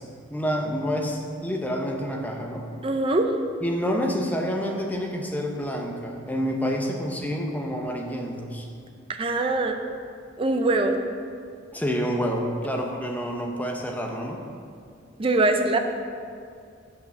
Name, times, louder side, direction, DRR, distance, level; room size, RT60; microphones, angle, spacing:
voice 1, 0.0-2.7 3.6-8.7 11.7-14.4, equal, 10° left, 1 dB, 0.7 m, -28 dB
voice 2, 2.8-3.3 9.2-9.8 10.4-11.0 15.2-15.8, right 2 dB, 25° right, 6 dB, 0.5 m, -22 dB
6.6 x 5.7 x 6.6 m, 2.3 s
head